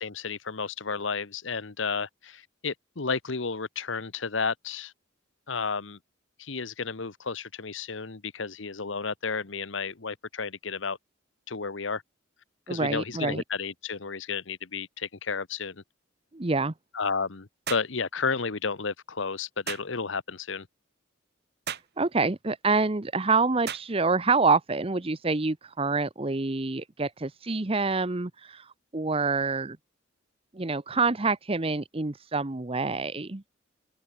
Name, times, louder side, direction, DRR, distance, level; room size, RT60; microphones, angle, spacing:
voice 1, 0.0-4.9 5.5-6.0 6.4-11.0 11.5-12.0 12.7-15.8 16.9-20.7, left 5 dB, 75° left, 1.1 m, -32 dB
voice 2, 12.7-13.4 16.3-16.7 22.0-29.8 30.5-33.4, right 4 dB, 30° right, 0.9 m, -27 dB
sound 1, 17.7-17.9 19.7-19.9 21.7-21.9 23.7-23.9, right 8 dB, 55° right, 2.3 m, -35 dB
head